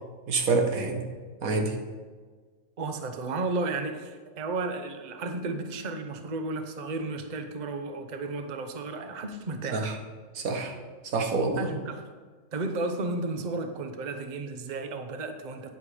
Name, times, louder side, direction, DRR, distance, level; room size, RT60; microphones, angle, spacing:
voice 1, 0.3-1.0 1.4-1.8 9.7-10.0 10.3-10.7 11.0-11.7, right 3 dB, 90° right, 3 dB, 1.7 m, -27 dB
voice 2, 2.8-10.0 11.6-12.1 12.5-15.7, right 3 dB, 40° right, 7 dB, 0.8 m, -33 dB
9.3 x 8.0 x 5.0 m, 1.5 s
omnidirectional pair, 1.4 m